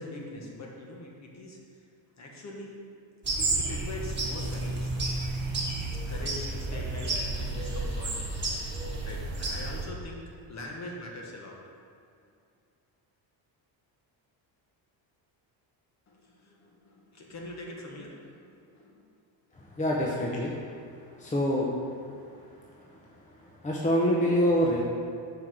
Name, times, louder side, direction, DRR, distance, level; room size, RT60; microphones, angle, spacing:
voice 1, 0.0-1.6 2.2-2.8 3.3-4.9 6.1-8.7 9.0-11.6 16.1-19.1, left 1 dB, 35° left, -1 dB, 1.3 m, -43 dB
sound 1, 3.2-9.8, right 2 dB, 25° right, 1.5 m, -31 dB
voice 2, 19.8-20.5 21.2-21.7 23.6-24.8, equal, 15° left, -3 dB, 0.7 m, -25 dB
5.8 x 4.9 x 6.0 m, 2.4 s
cardioid pair, 120°, 45 cm